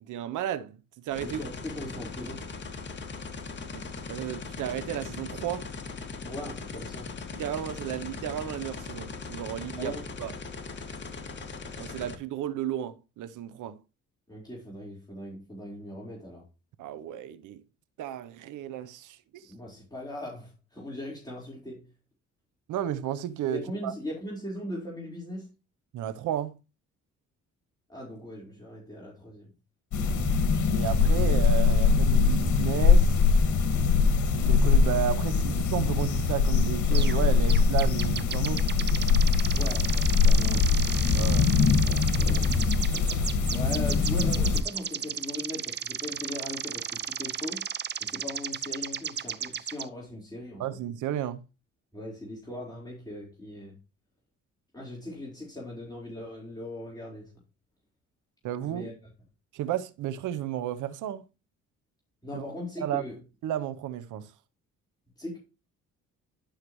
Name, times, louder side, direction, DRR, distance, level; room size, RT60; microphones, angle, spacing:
voice 1, 0.0-1.4 3.7-5.7 7.3-10.3 11.8-13.8 16.8-17.6 18.0-19.5 22.7-23.9 25.9-26.6 30.7-33.2 34.3-38.7 41.1-41.5 50.6-51.4 58.4-58.9 59.5-61.2 62.3-62.5 62.8-63.1 63.4-64.3, right 11 dB, 80° right, 0.8 m, -33 dB
sound 1, 1.1-12.2, left 4 dB, 35° left, 2.0 m, -39 dB
voice 2, 1.2-2.5 6.2-7.1 9.8-10.0 14.3-16.4 19.5-21.8 23.5-25.5 27.9-29.4 39.5-40.7 41.7-42.5 43.5-47.6 48.0-50.6 51.9-53.8 54.7-57.3 58.6-58.9 62.2-63.2 65.2-65.4, left 1 dB, 15° left, 4.2 m, -39 dB
sound 2, 29.9-44.6, left 5 dB, 70° left, 1.9 m, -22 dB
sound 3, 36.9-37.2 37.5-49.9, right 8 dB, 35° right, 0.6 m, -35 dB
11.5 x 6.6 x 3.1 m
cardioid pair, 90°, 30 cm